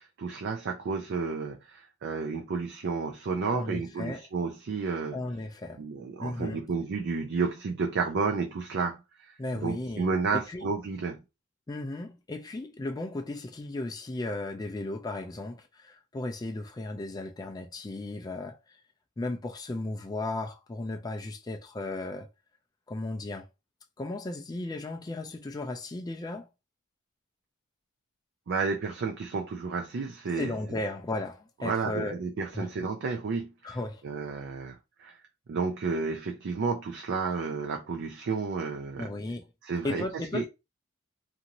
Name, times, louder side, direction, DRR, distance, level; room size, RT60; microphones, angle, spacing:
voice 1, 0.0-5.2 5.8-11.2 28.5-30.5 31.6-33.8 34.0-35.2 35.5-39.1 39.6-40.5, right 4 dB, 55° right, 0.4 m, -31 dB
voice 2, 3.5-4.2 5.1-5.8 6.2-6.6 9.4-10.7 11.7-18.6 19.2-22.3 22.9-23.4 24.0-26.5 30.4-32.2 32.5-32.7 33.6-34.0 39.0-39.4 39.8-40.5, left 2 dB, 20° left, 0.3 m, -35 dB
2.6 x 2.5 x 2.9 m
head